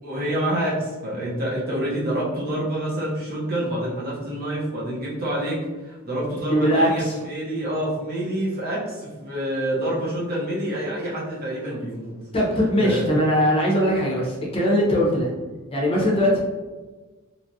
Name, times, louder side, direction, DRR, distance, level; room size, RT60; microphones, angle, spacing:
voice 1, 0.0-5.6 5.8-12.1 12.8-13.1, right 1 dB, 45° right, -6 dB, 0.9 m, -27 dB
voice 2, 6.2-7.1 12.3-15.3 15.7-16.4, equal, 25° left, -4 dB, 0.6 m, -21 dB
3.0 x 2.4 x 2.6 m, 1.3 s
head